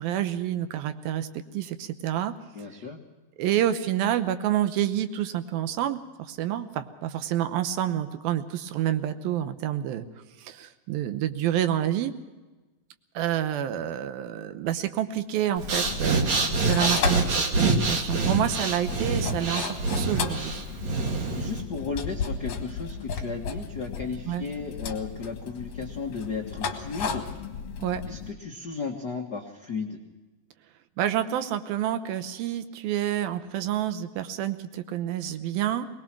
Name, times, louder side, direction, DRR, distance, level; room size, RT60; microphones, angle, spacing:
voice 1, 0.0-2.3 3.4-6.0 6.3-10.1 10.4-12.1 13.1-20.6 24.3-24.4 27.8-28.0 31.0-35.9, right 11 dB, 75° right, 10 dB, 2.7 m, -28 dB
voice 2, 2.5-3.0 21.3-27.2 28.1-30.0, left 5 dB, 70° left, 1 dB, 0.9 m, -34 dB
sound 1, 15.6-28.3, left 5 dB, 55° left, 2.3 m, -35 dB
Breathing, 15.6-21.6, right 3 dB, 50° right, 3.1 m, -26 dB
21.5 x 20.0 x 6.0 m, 1.2 s
omnidirectional pair, 4.4 m